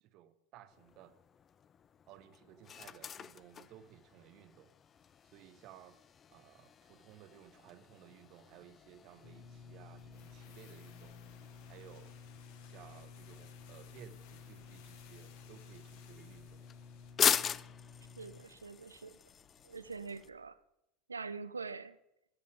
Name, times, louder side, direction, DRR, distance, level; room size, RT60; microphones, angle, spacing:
voice 1, 0.0-1.2 2.1-4.7 5.2-6.0 6.3-11.2 11.7-12.1 12.6-16.6, right 11 dB, 45° right, 0.7 m, -57 dB
sound 1, 0.7-20.3, left 8 dB, 30° left, 0.3 m, -42 dB
sound 2, 9.2-20.4, left 5 dB, 90° left, 3.8 m, -54 dB
sound 3, 10.0-17.3 17.5-17.6, left 9 dB, 55° left, 1.0 m, -62 dB
voice 2, 18.2-19.2 19.6-20.6 21.1-22.0, right 4 dB, 80° right, 0.4 m, -44 dB
16.0 x 6.7 x 4.8 m
figure-of-eight pair, 75°, 0 cm